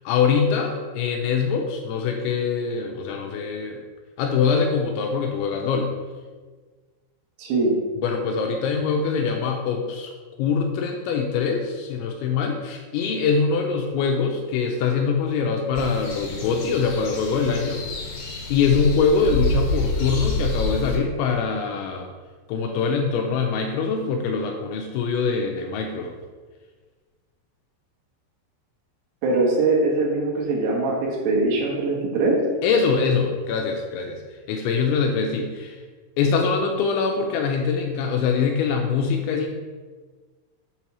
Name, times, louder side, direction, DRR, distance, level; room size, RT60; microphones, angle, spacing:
voice 1, 0.1-3.8 4.2-5.9 8.0-10.1 10.4-17.8 18.5-22.1 22.5-26.2 32.6-34.2 34.5-35.8 36.2-39.5, left 5 dB, 80° left, 3 dB, 2.8 m, -23 dB
voice 2, 7.4-7.8 29.2-32.4, right 3 dB, 85° right, -3 dB, 4.0 m, -22 dB
sound 1, 15.8-21.0, left 2 dB, 65° left, 2.8 m, -28 dB
8.1 x 2.8 x 6.0 m, 1.4 s
omnidirectional pair, 5.6 m